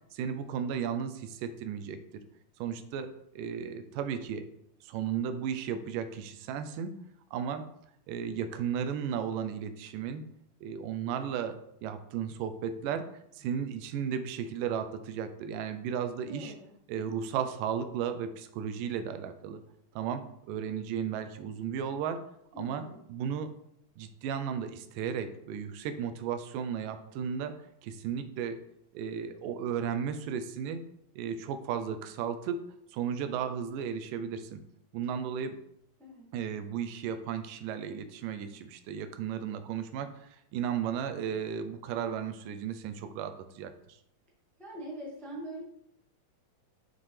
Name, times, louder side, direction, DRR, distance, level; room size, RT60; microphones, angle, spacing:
voice 1, 0.1-2.0 2.6-4.5 4.8-6.9 7.3-7.7 8.1-10.3 10.6-16.5 16.9-19.6 20.0-22.2 22.6-22.8 23.1-23.5 24.0-27.6 27.8-28.6 28.9-30.8 31.2-32.6 32.9-34.6 34.9-35.6 36.3-44.0, right 8 dB, 85° right, 9 dB, 2.2 m, -34 dB
voice 2, 16.3-16.7 22.5-23.0 36.0-36.3 44.6-45.6, right 1 dB, ahead, -4 dB, 0.5 m, -42 dB
7.0 x 5.9 x 3.3 m, 0.74 s
omnidirectional pair, 3.8 m